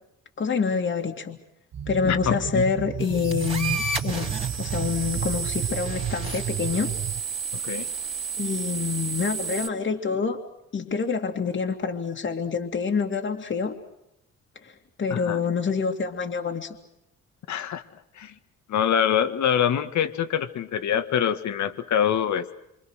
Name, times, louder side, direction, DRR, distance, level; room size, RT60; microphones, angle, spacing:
voice 1, 0.4-1.4 1.9-6.9 8.4-10.4 10.7-13.7 14.6-14.7 15.0-16.8, left 5 dB, 40° left, 2 dB, 2.5 m, -27 dB
sound 1, 1.7-7.2, right 9 dB, 60° right, 1.6 m, -32 dB
voice 2, 2.0-2.6 7.5-7.9 15.1-15.4 17.5-17.8 18.2-18.3 18.7-22.5, left 9 dB, 70° left, 9 dB, 2.0 m, -25 dB
sound 2, 3.0-9.7, right 5 dB, 20° right, 3.3 m, -32 dB
27.0 x 25.5 x 6.5 m, 0.81 s
cardioid pair, 90°, 30 cm